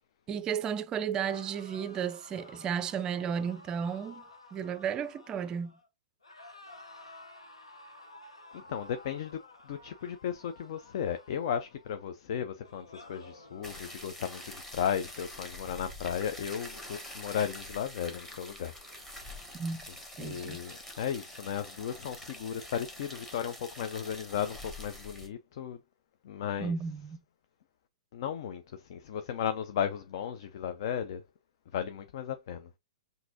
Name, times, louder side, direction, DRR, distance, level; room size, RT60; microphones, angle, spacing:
voice 1, 0.3-4.2 4.5-5.7 19.5-19.8 20.2-20.6 26.6-27.2, right 7 dB, 25° right, 0.4 m, -33 dB
sound 1, 1.2-5.9 6.2-12.1 12.6-14.0, left 2 dB, 80° left, 1.0 m, -53 dB
voice 2, 8.5-9.4 9.7-18.7 20.2-25.8 26.2-26.7 28.1-31.2 31.7-32.7, left 8 dB, 55° left, 0.5 m, -35 dB
sound 2, 13.6-25.3, left 1 dB, 10° left, 1.2 m, -46 dB
5.9 x 2.7 x 2.7 m
figure-of-eight pair, 110°, 3 cm